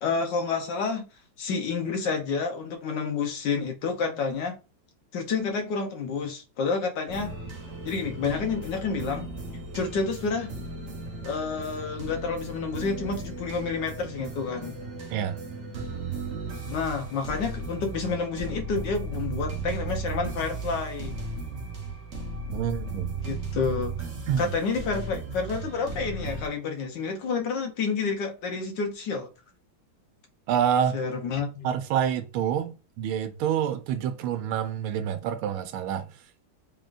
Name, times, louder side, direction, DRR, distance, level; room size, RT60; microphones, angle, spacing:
voice 1, 0.0-1.0 1.4-4.6 5.1-7.3 7.8-9.3 9.7-10.5 11.2-14.8 16.7-21.1 23.2-24.0 24.4-29.3 30.9-31.7, left 4 dB, 65° left, 1.4 m, -29 dB
sound 1, 7.1-26.5, right 3 dB, 45° right, 0.9 m, -36 dB
voice 2, 15.1-15.4 15.7-15.9 22.5-23.1 24.3-24.5 30.5-31.0 31.6-36.4, right 9 dB, 90° right, 1.5 m, -27 dB
4.1 x 3.6 x 2.5 m
omnidirectional pair, 2.3 m